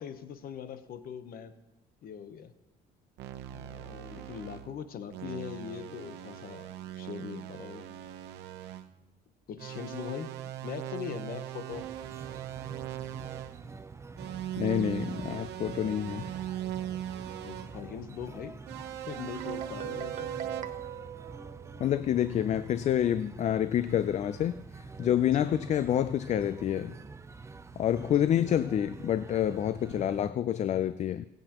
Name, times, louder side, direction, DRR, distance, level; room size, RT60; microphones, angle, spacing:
voice 1, 0.0-1.5 2.0-2.5 3.5-7.9 9.5-11.9 17.4-18.6 19.1-20.3 25.4-25.5 28.2-28.3, left 8 dB, 60° left, 10 dB, 0.9 m, -41 dB
sound 1, 3.2-4.7 5.1-8.9 9.6-13.6 14.2-17.8 18.6-20.6, right 12 dB, 85° right, 0.9 m, -40 dB
sound 2, 11.7-30.3, right 4 dB, 15° right, 0.6 m, -46 dB
voice 2, 14.6-16.3 21.8-26.9 27.8-31.3, left 10 dB, 45° left, 14 dB, 0.4 m, -28 dB
Guitar, 19.4-22.2, right 9 dB, 50° right, 1.0 m, -40 dB
23.5 x 8.0 x 3.0 m, 0.94 s
cardioid pair, 110°, 17 cm